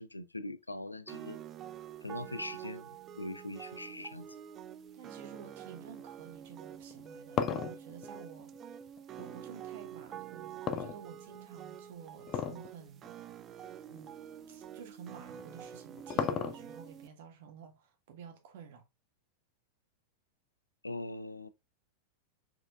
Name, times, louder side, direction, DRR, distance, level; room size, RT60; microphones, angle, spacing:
voice 1, 0.0-1.4 2.0-2.9 3.2-4.3 20.8-21.5, left 2 dB, 85° left, 0.4 m, -41 dB
sound 1, 1.1-17.1, right 9 dB, 30° right, 0.3 m, -47 dB
voice 2, 4.9-8.5 9.2-13.1 13.9-14.2 14.5-18.8, right 7 dB, 55° right, 1.2 m, -51 dB
sound 2, 6.8-9.3 10.7-11.5 12.3-12.7 13.0-13.1 13.9-14.0 15.4-16.9, left 7 dB, 30° left, 0.5 m, -34 dB
4.6 x 4.4 x 2.3 m
figure-of-eight pair, 90°, 0 cm